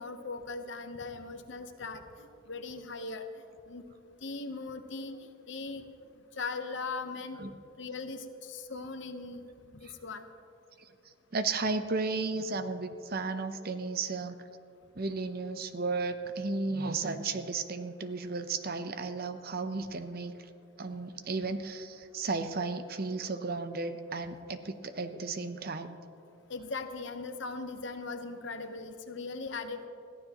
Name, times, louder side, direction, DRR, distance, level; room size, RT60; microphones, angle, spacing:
voice 1, 0.0-3.2 3.7-3.8 4.2-5.2 5.5-5.8 6.4-7.4 7.8-9.4 9.7-10.2 26.5-29.9, left 3 dB, 60° left, 7 dB, 1.0 m, -39 dB
voice 2, 11.3-14.4 15.0-20.5 20.8-26.0, right 3 dB, 45° right, 9 dB, 0.7 m, -34 dB
21.5 x 14.5 x 3.0 m, 2.6 s
head